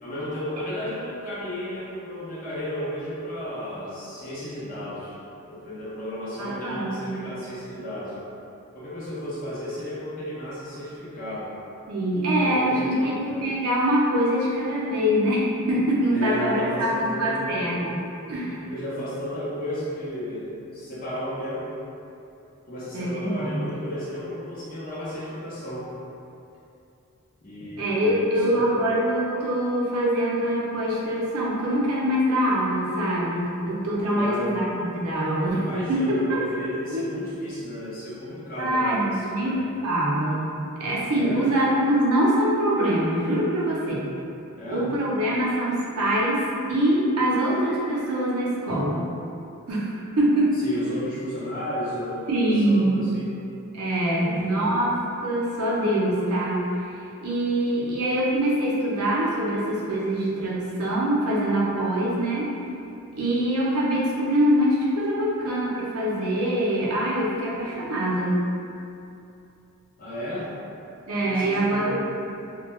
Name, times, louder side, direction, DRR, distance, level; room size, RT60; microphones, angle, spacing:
voice 1, 0.0-5.2 5.5-8.2 8.7-11.5 12.3-13.4 14.9-15.0 16.1-17.8 18.6-21.7 22.6-25.9 27.4-28.9 34.1-34.5 35.5-39.6 41.2-41.4 44.5-44.9 50.6-53.3 54.2-54.7 70.0-70.5 71.2-71.9, left 1 dB, 40° left, -9 dB, 0.7 m, -33 dB
voice 2, 6.4-7.2 11.9-15.4 15.7-17.9 18.3-18.6 22.9-23.7 27.8-35.6 35.9-36.4 36.9-37.0 38.6-39.6 39.8-40.4 40.8-44.0 44.7-46.4 46.7-49.0 49.7-50.5 52.3-53.0 53.7-54.9 55.2-56.9 57.2-62.5 63.2-68.4 71.1-72.0, right 1 dB, 80° right, -6 dB, 0.6 m, -24 dB
2.2 x 2.2 x 2.9 m, 2.7 s
head